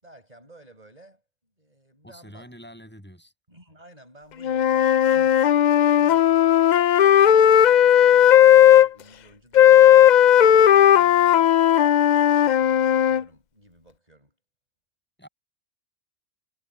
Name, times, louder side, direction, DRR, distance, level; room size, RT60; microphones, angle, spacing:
voice 1, 0.0-2.5 3.5-6.8 7.4-14.4, right 1 dB, 30° right, 5.6 m, -52 dB
voice 2, 2.0-3.3 15.2-15.3, equal, 10° left, 6.9 m, -45 dB
Wind instrument woodwind instrument, 4.4-8.9 9.5-13.2, left 10 dB, 90° left, 0.4 m, -15 dB
omnidirectional pair, 1.3 m